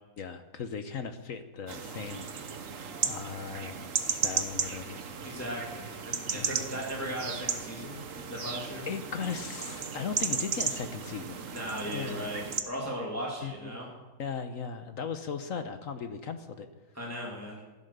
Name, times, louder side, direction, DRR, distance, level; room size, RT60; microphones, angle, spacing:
voice 1, 0.2-2.5 3.0-5.0 6.3-6.6 8.3-8.5 8.9-11.4 11.9-12.2 13.4-13.8 14.2-16.7, left 6 dB, 55° left, 9 dB, 1.2 m, -38 dB
sound 1, 1.7-12.6, right 6 dB, 55° right, 1.4 m, -35 dB
voice 2, 5.2-8.0 8.3-8.9 11.5-13.9 16.9-17.6, equal, 10° left, -3 dB, 2.3 m, -37 dB
15.5 x 11.5 x 6.7 m, 1.3 s
omnidirectional pair, 1.8 m